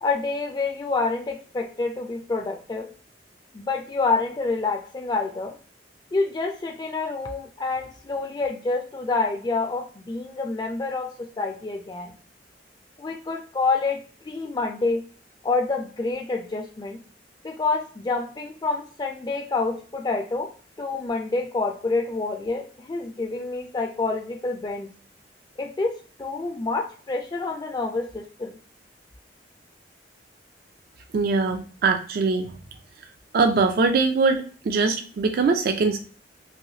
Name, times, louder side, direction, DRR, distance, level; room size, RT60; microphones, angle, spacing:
voice 1, 0.0-2.9 3.5-5.6 6.1-12.1 13.0-15.0 15.4-17.0 17.4-20.5 20.8-24.9 25.6-28.5, left 3 dB, 25° left, 3 dB, 0.3 m, -27 dB
voice 2, 31.1-32.5 33.3-36.0, right 4 dB, 55° right, 5 dB, 0.3 m, -22 dB
3.2 x 2.7 x 2.7 m, 0.41 s
head